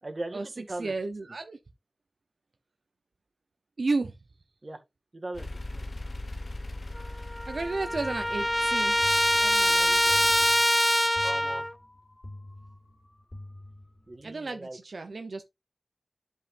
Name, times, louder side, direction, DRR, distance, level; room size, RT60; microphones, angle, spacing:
voice 1, 0.0-0.9 4.6-4.8 5.1-5.5 5.7-5.8 11.2-11.7 14.1-14.8, right 2 dB, 45° right, 1.9 m, -38 dB
voice 2, 0.8-1.6 3.8-4.1 7.1-9.0 9.4-10.3 14.2-15.5, right 3 dB, 90° right, 0.7 m, -33 dB
sound 1, 5.3-10.5, left 2 dB, 75° left, 1.2 m, -41 dB
Trumpet, 7.0-7.1 7.3-11.7, equal, 10° left, 0.4 m, -24 dB
sound 2, 7.9-14.3, left 1 dB, 50° left, 3.4 m, -47 dB
10.5 x 5.5 x 2.5 m
wide cardioid pair, 60°, 0 cm